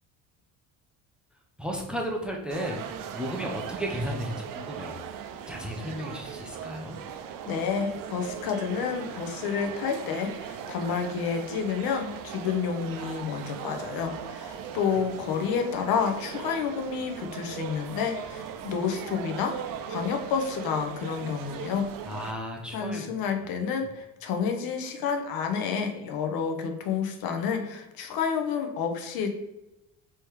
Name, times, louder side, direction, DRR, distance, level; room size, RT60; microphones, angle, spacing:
voice 1, 1.6-5.0 5.5-7.0 14.5-14.8 22.0-23.1 23.4-23.5, equal, 5° right, 1 dB, 0.6 m, -34 dB
sound 1, 2.5-22.3, right 8 dB, 65° right, 0.5 m, -39 dB
voice 2, 7.5-19.5 19.9-21.9 22.7-29.3, left 6 dB, 80° left, 4 dB, 0.8 m, -29 dB
3.5 x 3.1 x 4.6 m, 0.94 s
cardioid pair, 130°, 35 cm